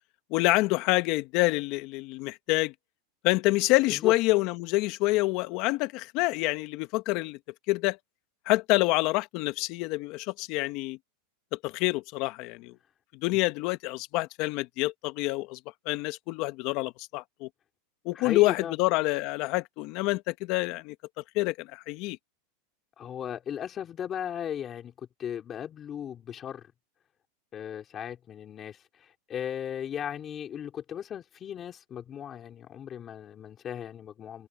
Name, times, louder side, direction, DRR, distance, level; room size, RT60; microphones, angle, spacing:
voice 1, 0.3-2.7 3.2-7.4 7.7-8.0 8.5-11.0 11.6-12.7 13.2-15.6 15.8-17.5 18.0-20.9 21.3-22.2, left 21 dB, 50° left, 1.5 m, -27 dB
voice 2, 18.1-18.8 23.0-24.9 25.2-26.7 27.5-34.5, left 9 dB, 25° left, 3.7 m, -37 dB
supercardioid pair, 135°, 0 cm